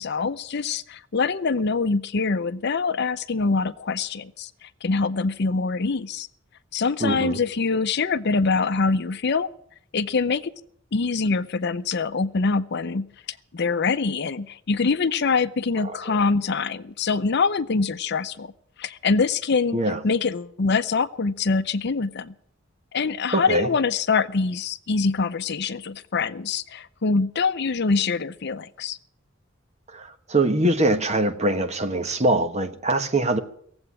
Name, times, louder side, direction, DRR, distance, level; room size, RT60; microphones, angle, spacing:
voice 1, 0.0-6.3 6.7-9.5 9.9-10.5 10.9-13.1 13.5-18.5 18.8-19.8 20.0-22.3 22.9-29.0, left 4 dB, 60° left, 0.6 m, -24 dB
voice 2, 7.0-7.4 15.8-16.2 19.7-20.0 23.3-23.7 29.9-33.4, right 1 dB, 35° right, 1.2 m, -23 dB
17.5 x 7.9 x 9.8 m
head